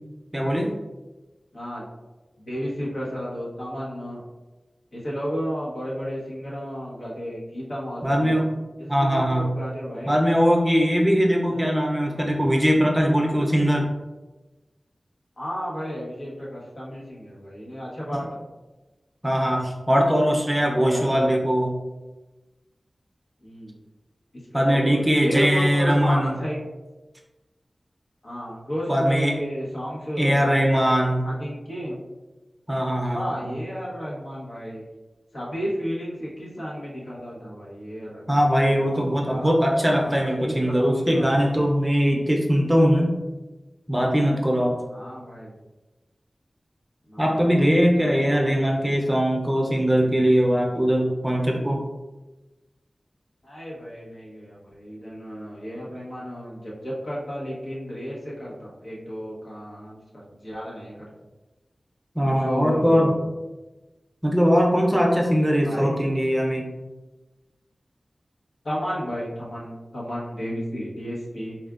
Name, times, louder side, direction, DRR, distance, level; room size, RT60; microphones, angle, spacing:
voice 1, 0.3-0.7 8.0-8.5 8.9-9.5 10.1-13.9 18.1-18.2 19.2-21.7 24.5-26.4 28.9-29.4 30.2-31.2 32.7-33.5 38.3-43.1 43.9-44.8 47.2-51.8 62.2-63.1 64.2-66.7, equal, 15° right, 0 dB, 0.6 m, -21 dB
voice 2, 1.5-1.8 2.4-4.2 4.9-8.4 8.8-10.1 11.5-11.6 15.4-18.3 20.9-21.3 23.4-23.7 24.5-26.6 28.2-30.5 31.2-32.0 33.1-34.8 35.3-39.5 39.9-41.5 44.9-45.5 47.1-48.8 53.4-60.0 60.4-60.9 62.2-63.2 65.6-65.9 68.6-71.6, equal, 70° left, -6 dB, 1.1 m, -33 dB
4.2 x 2.4 x 2.4 m, 1.1 s
cardioid pair, 40°, 0 cm